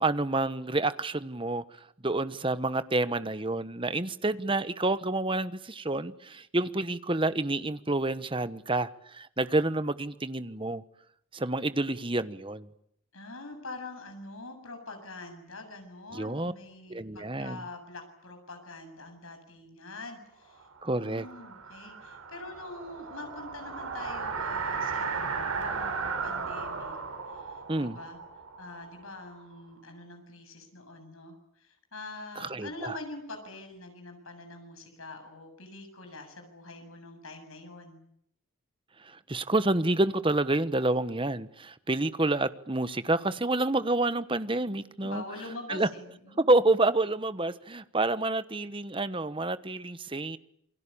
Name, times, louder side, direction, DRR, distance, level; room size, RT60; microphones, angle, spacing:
voice 1, 0.0-1.6 2.0-10.8 11.3-12.7 16.1-16.5 16.9-17.6 20.8-21.3 27.7-28.0 32.4-33.0 39.0-45.2 45.7-45.9 46.4-50.4, right 2 dB, 25° right, 1.1 m, -28 dB
voice 2, 13.1-20.7 20.9-27.0 27.3-28.2 28.6-38.0 45.0-46.6, left 2 dB, 75° left, 7.6 m, -44 dB
sound 1, 20.7-29.4, right 5 dB, 85° right, 5.3 m, -35 dB
28.5 x 23.0 x 8.7 m
head